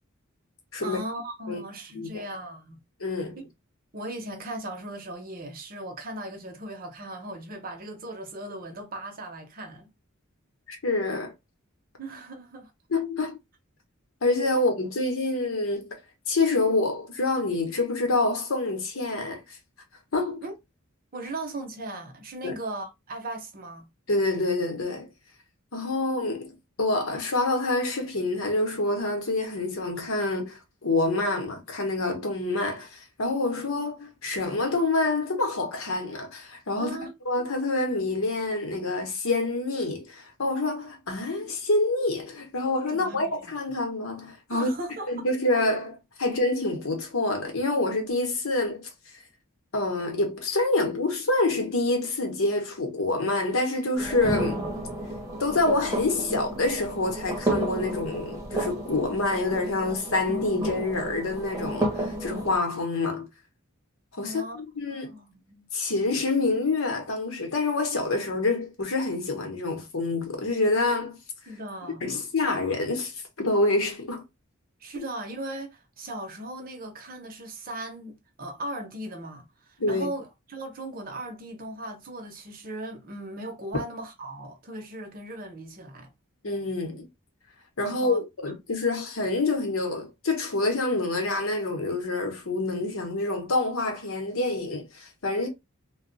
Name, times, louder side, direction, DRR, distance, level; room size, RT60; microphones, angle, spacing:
voice 1, 0.8-2.8 3.4-3.5 3.9-9.9 12.0-12.7 20.4-20.5 21.1-23.9 36.8-37.1 43.0-43.4 44.5-45.3 64.2-64.6 64.9-65.7 71.5-72.2 74.8-86.1 87.9-88.2, right 1 dB, 45° right, 0.8 m, -38 dB
voice 2, 3.0-3.4 10.7-11.3 12.9-13.4 14.2-16.0 16.3-19.6 20.1-20.4 22.4-22.5 24.1-25.1 25.7-37.0 37.2-44.7 45.1-48.9 49.7-54.6 55.4-63.3 64.1-65.1 65.7-71.2 72.0-74.2 79.8-80.1 86.4-87.0 87.8-95.5, left 2 dB, 80° left, 1.0 m, -27 dB
sound 1, 54.0-62.6, right 1 dB, 15° right, 0.9 m, -32 dB
2.3 x 2.2 x 3.9 m
head